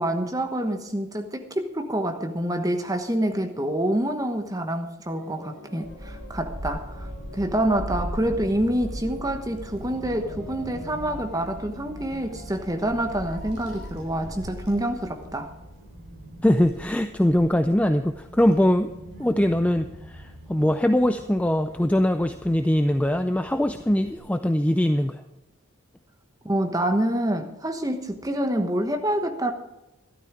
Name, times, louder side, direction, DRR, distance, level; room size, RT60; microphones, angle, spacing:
voice 1, 0.0-7.1 7.3-15.5 26.4-29.5, right 1 dB, 15° right, 6 dB, 1.1 m, -27 dB
sound 1, 5.0-15.3, right 1 dB, 45° left, 5.0 m, -47 dB
Child speech kid speaking / Wind, 5.8-24.2, equal, 50° right, 3.6 m, -40 dB
voice 2, 16.4-18.9 19.2-25.2, left 1 dB, 5° left, 8 dB, 0.4 m, -22 dB
13.0 x 12.0 x 4.9 m, 0.98 s
head